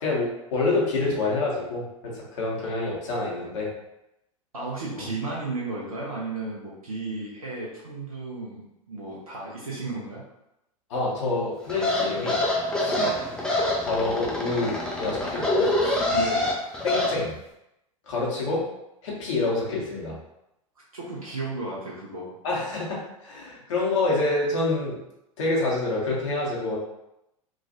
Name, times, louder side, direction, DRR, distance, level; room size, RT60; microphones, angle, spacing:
voice 1, 0.0-3.7 5.0-5.1 10.9-12.4 12.8-13.1 13.8-15.7 16.8-17.3 18.1-18.7 19.0-20.1 22.4-25.0 25.4-26.8, left 2 dB, 60° left, -4 dB, 1.0 m, -27 dB
voice 2, 4.5-10.2 12.9-13.0 15.4-16.5 20.9-22.3, right 3 dB, 80° right, -5 dB, 0.8 m, -34 dB
sound 1, 11.7-17.1, left 1 dB, 5° left, 0.4 m, -26 dB
3.1 x 2.4 x 2.6 m, 0.86 s
figure-of-eight pair, 85°, 18 cm